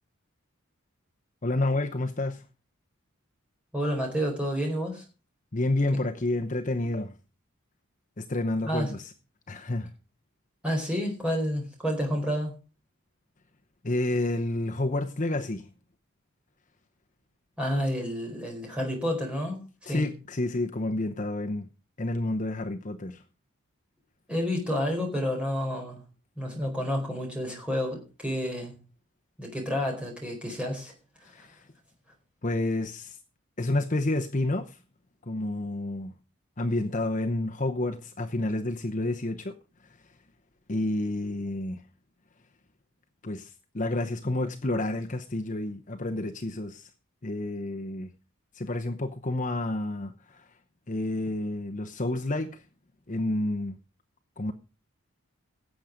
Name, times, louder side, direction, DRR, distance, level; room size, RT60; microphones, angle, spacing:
voice 1, 1.4-2.4 5.5-7.1 8.2-9.1 9.5-9.9 13.8-15.7 19.9-21.7 22.0-23.2 31.2-31.7 32.4-33.2 33.6-34.8 35.3-36.1 36.6-39.5 39.8-40.1 40.7-41.8 43.2-46.9 47.2-48.1 48.5-50.5 50.9-52.6 53.1-53.8 54.4-54.5, left 2 dB, 35° left, 0.8 m, -29 dB
voice 2, 3.7-5.0 8.6-8.9 10.6-12.5 17.6-19.6 19.9-20.1 24.3-26.0 26.4-28.8 29.4-30.9 31.2-31.5, equal, 5° right, 4.3 m, -30 dB
17.5 x 7.7 x 5.1 m
head